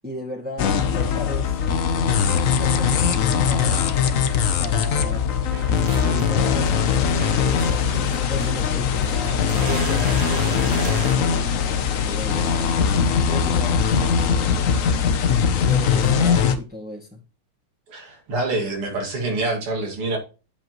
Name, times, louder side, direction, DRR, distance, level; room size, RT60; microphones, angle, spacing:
voice 1, 0.0-3.9 4.6-5.3 5.7-7.6 8.2-12.8 13.3-14.9 15.6-17.2, left 1 dB, 5° right, 1.7 m, -36 dB
sound 1, 0.6-16.6, left 7 dB, 70° left, 0.7 m, -21 dB
sound 2, 5.5-11.2, right 4 dB, 45° right, 0.9 m, -36 dB
voice 2, 17.9-20.2, right 2 dB, 85° right, 3.2 m, -26 dB
8.5 x 7.7 x 3.0 m
omnidirectional pair, 2.4 m